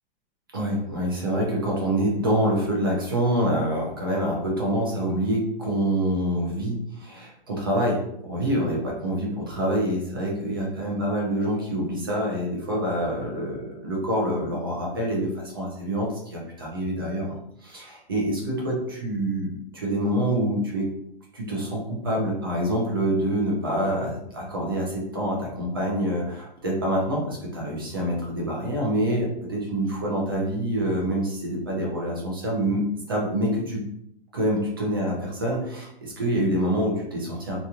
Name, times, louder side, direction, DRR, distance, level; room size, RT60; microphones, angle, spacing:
voice 1, 0.5-20.9 21.3-33.8 34.3-37.6, right 1 dB, 25° right, -3 dB, 0.4 m, -26 dB
2.9 x 2.4 x 2.3 m, 0.77 s
hypercardioid pair, 175°, 30 cm